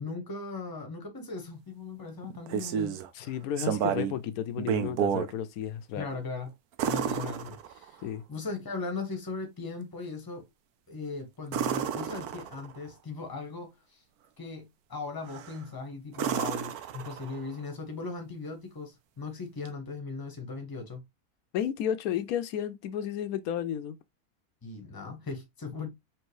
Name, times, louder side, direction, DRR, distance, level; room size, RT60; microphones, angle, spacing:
voice 1, 0.0-3.0 6.0-6.5 6.8-8.0 8.3-10.4 10.9-14.0 14.4-21.0 24.6-25.9, left 4 dB, 15° left, 0.9 m, -38 dB
sound 1, 2.2-3.1 3.6-4.2 4.6-5.3 6.8-8.0 11.5-12.8 15.3-15.6 16.1-17.5 19.7-19.8, right 9 dB, 80° right, 1.1 m, -31 dB
voice 2, 3.1-6.1 8.0-8.2 21.5-24.0, left 9 dB, 75° left, 1.0 m, -32 dB
4.5 x 3.0 x 3.1 m
omnidirectional pair, 1.6 m